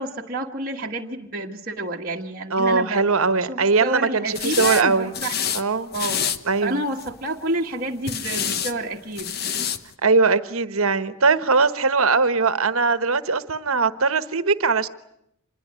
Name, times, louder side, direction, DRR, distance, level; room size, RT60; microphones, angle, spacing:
voice 1, 0.0-3.0 3.5-5.3 5.9-6.2 6.6-9.3, right 2 dB, 40° right, -2 dB, 1.6 m, -29 dB
voice 2, 2.5-5.1 5.5-5.9 6.4-6.8 10.0-14.9, right 4 dB, 70° right, 13 dB, 1.3 m, -20 dB
sound 1, 4.3-4.8 5.1-5.6 5.9-6.4 6.9-7.3 8.1-8.7 9.1-9.8, left 8 dB, 45° left, 1.2 m, -27 dB
26.5 x 21.0 x 9.6 m, 0.77 s
head